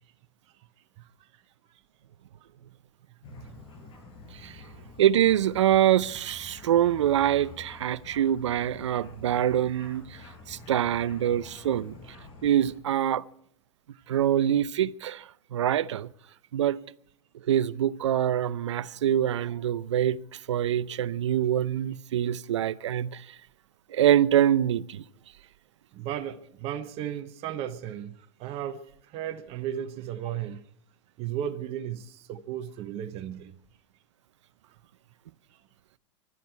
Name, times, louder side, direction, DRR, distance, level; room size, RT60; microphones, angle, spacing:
voice 1, 1.0-1.3 13.9-14.1 25.9-30.6 31.2-33.6, right 10 dB, 40° right, 1.1 m, -35 dB
sound 1, 3.2-12.8, left 3 dB, 35° left, 6.7 m, -48 dB
voice 2, 5.0-10.2 10.5-11.9 12.4-13.2 14.1-16.1 16.5-16.8 17.5-20.2 20.5-23.2 23.9-25.0, right 11 dB, 85° right, 0.6 m, -25 dB
25.0 x 12.5 x 4.6 m
hypercardioid pair, 115°, 15 cm